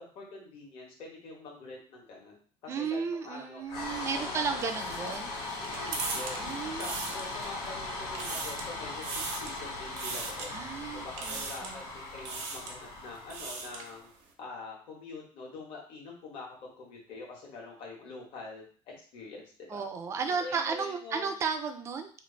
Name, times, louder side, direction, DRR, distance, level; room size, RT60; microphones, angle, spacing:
voice 1, 0.0-2.3 2.6-3.6 4.1-5.2 5.6-6.4 6.7-10.5 10.9-14.1 14.4-19.8 20.4-21.3, left 3 dB, 55° left, -2 dB, 1.4 m, -45 dB
voice 2, 2.7-5.3 6.4-6.9 10.5-11.8 19.7-22.1, right 5 dB, 25° right, 6 dB, 0.4 m, -34 dB
sound 1, 3.7-14.0, left 2 dB, 80° left, 1.5 m, -39 dB
sound 2, 4.6-7.7 8.0-8.7 9.0-9.6 10.0-10.5 11.2-11.8 12.2-12.8 13.1-13.9, right 4 dB, 85° right, 0.8 m, -39 dB
3.1 x 2.4 x 3.9 m, 0.43 s
cardioid pair, 175°, 11 cm